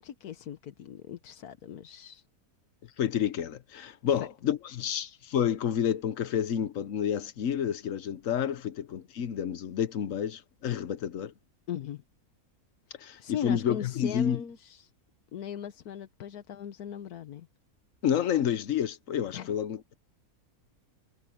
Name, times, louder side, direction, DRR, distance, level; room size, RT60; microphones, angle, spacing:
voice 1, 0.0-2.3 4.1-4.3 11.7-12.0 13.2-14.9 15.3-17.5 19.3-19.5, left 9 dB, 85° left, 1.5 m, -39 dB
voice 2, 3.0-11.3 13.0-14.4 18.0-19.9, left 9 dB, 65° left, 1.2 m, -29 dB
omnidirectional pair, 1.6 m